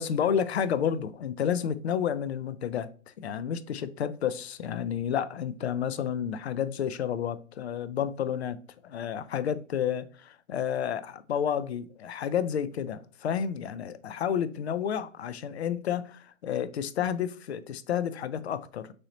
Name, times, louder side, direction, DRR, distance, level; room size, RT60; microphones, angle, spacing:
voice 1, 0.0-2.9 3.2-18.9, left 8 dB, 50° left, 0.5 m, -30 dB
6.2 x 2.7 x 3.0 m
hypercardioid pair, 145°, 43 cm